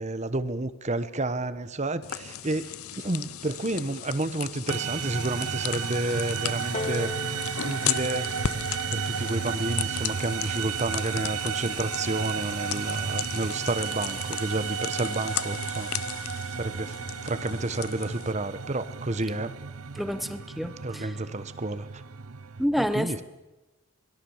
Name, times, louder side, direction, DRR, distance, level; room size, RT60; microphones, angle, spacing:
voice 1, 0.0-8.3 8.9-15.9 16.5-17.0 17.2-19.5 20.8-22.0 22.8-23.2, right 2 dB, 30° right, 13 dB, 1.1 m, -30 dB
sound 1, 2.0-18.3, left 10 dB, 85° left, 0.8 m, -36 dB
sound 2, 4.7-22.6, right 7 dB, 85° right, 0.7 m, -33 dB
Piano, 6.7-11.9 12.8-12.9, left 3 dB, 30° left, 1.2 m, -41 dB
voice 2, 20.0-21.1 22.6-23.2, equal, ahead, 12 dB, 0.8 m, -29 dB
28.5 x 21.0 x 7.3 m, 1.1 s
head